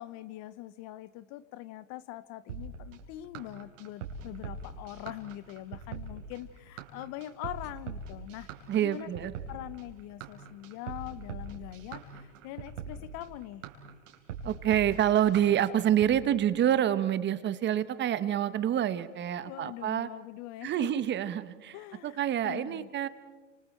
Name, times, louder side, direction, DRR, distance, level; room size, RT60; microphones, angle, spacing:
voice 1, 0.0-8.5 8.8-13.6 19.4-21.0 21.7-22.9, left 14 dB, 45° left, 17 dB, 0.9 m, -43 dB
sound 1, 2.5-16.1, right 5 dB, 75° right, 4.0 m, -42 dB
voice 2, 8.7-9.3 14.4-20.1 20.6-21.8 22.0-23.1, right 10 dB, 30° right, 14 dB, 1.2 m, -27 dB
30.0 x 27.0 x 4.5 m, 1.3 s
hypercardioid pair, 115°, 39 cm